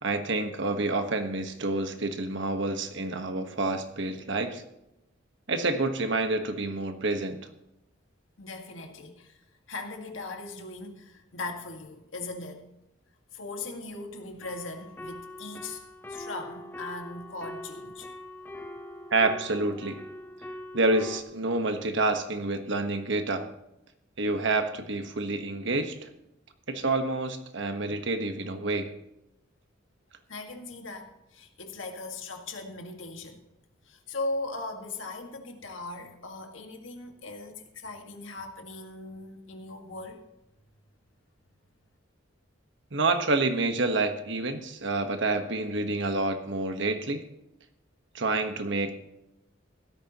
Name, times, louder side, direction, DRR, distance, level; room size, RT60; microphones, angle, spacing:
voice 1, 0.0-4.6 5.5-7.4 19.1-20.0 20.7-23.5 24.2-26.1 26.7-28.9 42.9-47.2 48.1-48.9, right 2 dB, 65° right, 1.3 m, -28 dB
voice 2, 8.4-9.4 9.7-12.7 13.3-15.8 16.1-18.1 30.3-33.5 33.8-40.2, left 2 dB, 75° left, 1.8 m, -39 dB
sound 1, 14.4-21.2, left 1 dB, 10° left, 1.0 m, -42 dB
16.0 x 13.0 x 3.0 m
head